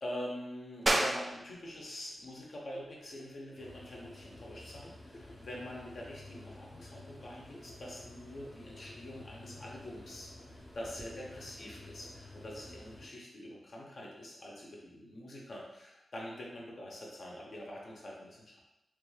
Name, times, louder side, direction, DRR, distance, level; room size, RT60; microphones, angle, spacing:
voice 1, 0.0-18.6, left 1 dB, 60° left, -3 dB, 0.8 m, -45 dB
sound 1, 0.9-11.1, right 1 dB, 30° right, 0.3 m, -40 dB
sound 2, 2.7-12.1, left 1 dB, 30° left, 0.7 m, -56 dB
sound 3, 3.6-13.1, left 2 dB, 85° left, 1.1 m, -52 dB
3.2 x 2.4 x 3.2 m, 0.91 s
wide cardioid pair, 90°, 0 cm